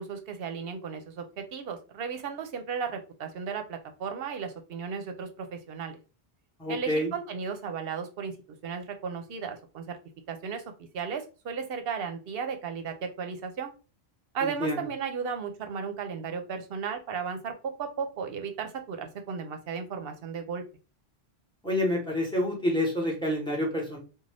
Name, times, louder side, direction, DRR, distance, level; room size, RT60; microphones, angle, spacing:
voice 1, 0.0-6.0 6.7-8.3 8.6-10.0 10.3-10.6 10.9-13.7 14.3-20.6, right 6 dB, 65° right, 6 dB, 0.8 m, -35 dB
voice 2, 6.6-7.1 14.4-14.8 21.6-24.0, left 1 dB, 5° left, -3 dB, 1.0 m, -28 dB
2.5 x 2.3 x 3.3 m, 0.33 s
omnidirectional pair, 1.1 m